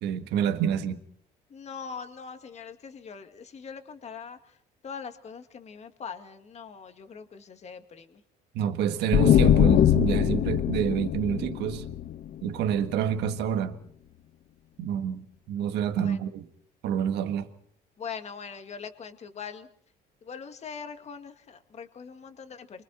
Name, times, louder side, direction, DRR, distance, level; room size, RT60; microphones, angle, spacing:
voice 1, 0.0-1.0 8.5-11.8 12.4-13.8 14.8-16.4 16.8-17.5, right 9 dB, 80° right, 1.7 m, -28 dB
voice 2, 1.5-8.2 16.0-16.2 18.0-19.7 20.2-22.8, left 6 dB, 40° left, 2.2 m, -42 dB
sound 1, 9.1-12.7, left 10 dB, 55° left, 0.9 m, -22 dB
29.5 x 24.5 x 4.4 m
cardioid pair, 110°, 17 cm